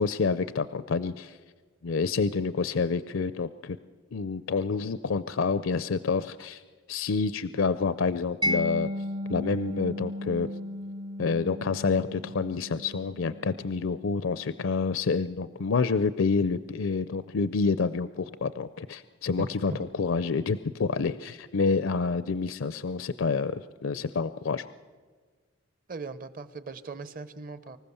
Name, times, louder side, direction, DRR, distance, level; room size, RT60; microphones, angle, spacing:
voice 1, 0.0-1.4 1.8-3.8 4.1-6.6 6.9-8.9 9.3-10.5 11.2-19.7 20.0-24.7, left 4 dB, 70° left, 14 dB, 0.5 m, -28 dB
Mallet percussion, 8.4-15.2, left 1 dB, 20° right, 0.5 m, -35 dB
voice 2, 19.4-19.8 25.9-27.8, right 3 dB, 45° right, 14 dB, 0.9 m, -39 dB
25.0 x 15.0 x 7.0 m, 1.5 s
head